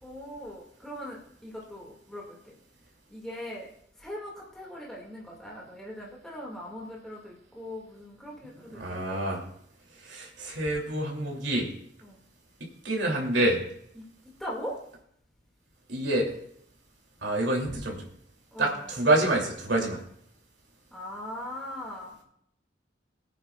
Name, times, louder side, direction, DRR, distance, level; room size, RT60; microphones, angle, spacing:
voice 1, 0.0-2.5 3.1-3.7 4.0-9.2 12.0-12.2 14.0-14.1 14.4-14.8 18.5-18.9 20.9-22.1, equal, 5° left, -4 dB, 2.1 m, -40 dB
voice 2, 8.7-9.4 10.0-11.7 12.6-13.6 15.9-16.3 17.2-18.1 18.6-20.0, right 1 dB, 75° right, -1 dB, 2.8 m, -27 dB
21.5 x 9.2 x 2.4 m, 0.69 s
head